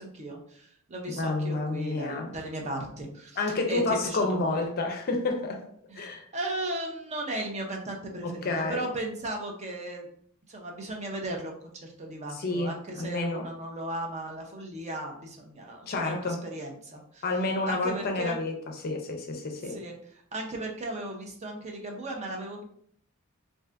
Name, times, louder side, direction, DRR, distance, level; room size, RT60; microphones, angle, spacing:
voice 1, 0.0-4.5 5.9-10.1 10.5-11.5 11.8-17.3 17.7-18.4 19.6-20.0 20.3-22.6, right 1 dB, 30° right, 2 dB, 0.5 m, -36 dB
voice 2, 1.1-2.3 3.4-5.6 5.9-6.2 8.2-8.8 12.3-13.5 15.9-16.4 17.2-19.8, left 2 dB, 45° left, 3 dB, 0.5 m, -29 dB
2.6 x 2.4 x 3.3 m, 0.64 s
head